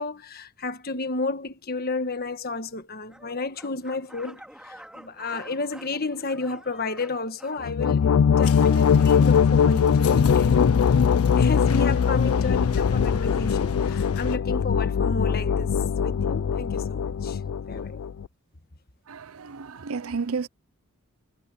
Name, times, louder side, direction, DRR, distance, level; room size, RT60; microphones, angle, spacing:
voice 1, 0.0-8.0 8.4-10.8 11.4-15.7 16.0-17.4 17.7-18.0, left 3 dB, 45° left, 1.4 m, -31 dB
sound 1, 3.1-9.1, equal, 5° right, 2.6 m, -48 dB
sound 2, 7.6-18.3, left 7 dB, 65° left, 0.4 m, -21 dB
sound 3, 8.4-14.4, left 3 dB, 85° left, 1.4 m, -36 dB
voice 2, 19.1-20.5, right 5 dB, 70° right, 0.7 m, -32 dB
head